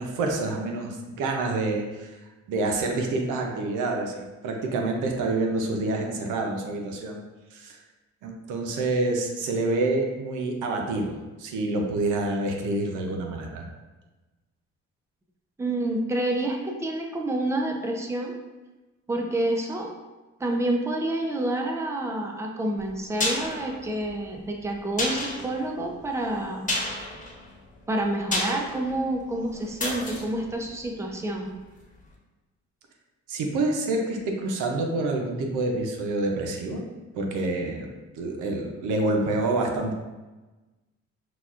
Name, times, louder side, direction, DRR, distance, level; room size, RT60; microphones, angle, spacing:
voice 1, 0.0-2.2 2.5-7.2 7.5-7.8 8.2-13.7 33.3-36.8 37.1-39.9, right 2 dB, 90° right, 2 dB, 0.6 m, -27 dB
voice 2, 15.6-18.3 19.1-19.9 20.4-26.7 27.9-31.5, right 1 dB, 10° right, 2 dB, 0.5 m, -28 dB
sound 1, 22.8-31.6 31.9-32.0, left 1 dB, 25° left, 1.1 m, -33 dB
5.8 x 2.3 x 2.4 m, 1.2 s
cardioid pair, 90°, 30 cm